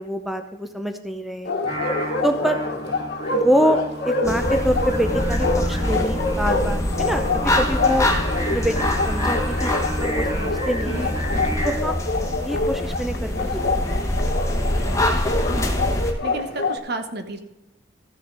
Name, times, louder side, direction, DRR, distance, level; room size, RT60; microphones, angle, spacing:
voice 1, 0.0-1.5 2.2-2.6 3.3-8.1 8.5-11.2 11.6-11.9 12.4-14.1, equal, ahead, 6 dB, 0.6 m, -25 dB
Bark, 1.4-16.8, left 3 dB, 60° left, 1.3 m, -26 dB
Singing, 1.7-11.8, right 1 dB, 20° right, 1.9 m, -33 dB
sound 1, 4.2-16.1, left 1 dB, 15° left, 1.2 m, -25 dB
voice 2, 16.2-17.4, right 2 dB, 60° right, 7 dB, 1.1 m, -31 dB
14.5 x 6.6 x 4.0 m, 0.95 s
head